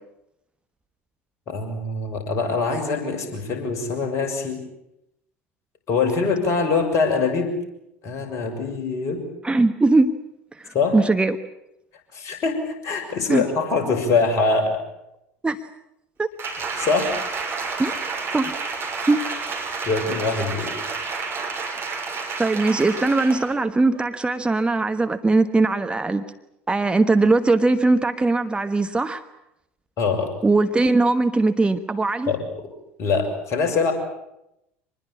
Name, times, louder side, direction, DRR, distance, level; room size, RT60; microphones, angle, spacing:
voice 1, 1.5-4.6 5.9-7.5 8.0-9.2 10.7-11.0 12.1-14.8 16.6-17.2 19.8-20.7 30.0-30.3 32.3-32.4 33.0-33.9, left 4 dB, 45° left, 5 dB, 6.4 m, -23 dB
voice 2, 9.4-10.2 10.6-11.4 13.3-13.5 15.4-15.6 16.2-16.3 17.8-17.9 18.3-18.6 19.1-19.2 22.4-26.2 26.7-29.2 30.4-32.3, right 3 dB, 15° right, 8 dB, 1.3 m, -20 dB
Applause, 16.4-23.5 23.9-24.1, right 4 dB, 35° right, 6.5 m, -30 dB
25.5 x 21.0 x 8.6 m, 0.84 s
figure-of-eight pair, 70°, 7 cm